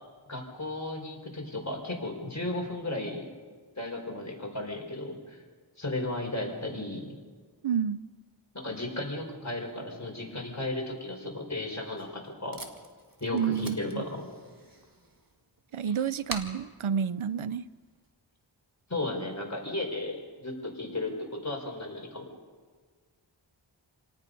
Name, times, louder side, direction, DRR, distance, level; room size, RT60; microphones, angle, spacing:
voice 1, 0.3-3.3 3.8-5.4 5.8-7.1 8.6-12.6 13.2-14.3 18.9-22.3, left 2 dB, 35° left, 0 dB, 5.3 m, -35 dB
voice 2, 7.6-8.0 13.3-14.0 15.7-17.6, right 7 dB, 85° right, 15 dB, 0.7 m, -29 dB
Packing tape duct tape, 11.6-18.1, right 2 dB, 45° right, 2.3 m, -46 dB
28.5 x 18.5 x 5.5 m, 1.5 s
wide cardioid pair, 55°, 48 cm